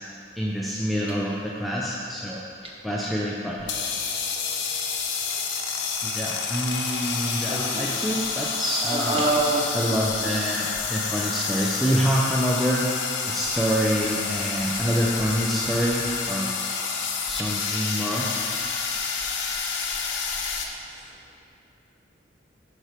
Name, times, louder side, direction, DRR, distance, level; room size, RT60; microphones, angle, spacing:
voice 1, 0.4-2.4 2.8-3.6 6.0-9.3 9.7-12.9 13.3-16.5 17.3-18.3, equal, ahead, -5 dB, 0.5 m, -26 dB
sound 1, 3.6-20.7, left 5 dB, 90° left, 0.9 m, -29 dB
voice 2, 7.5-7.8 8.9-9.6, right 3 dB, 30° right, -3 dB, 1.2 m, -25 dB
11.0 x 4.8 x 5.0 m, 2.5 s
head